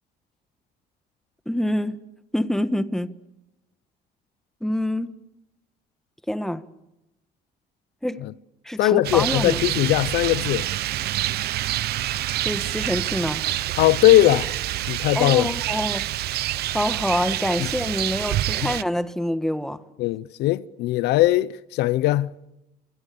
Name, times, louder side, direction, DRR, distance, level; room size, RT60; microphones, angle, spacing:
voice 1, 1.4-2.0 2.3-3.1 4.6-5.1 6.3-6.6 8.0-8.2 8.6-9.6 12.3-13.5 15.1-16.1 16.7-19.8, left 1 dB, ahead, 1.6 m, -26 dB
voice 2, 8.8-10.7 13.8-14.5 14.9-15.5 20.0-22.3, left 15 dB, 85° left, 0.9 m, -19 dB
Rain, 9.0-18.8, right 14 dB, 70° right, 0.9 m, -27 dB
28.0 x 26.5 x 7.0 m
cardioid pair, 110°, 17 cm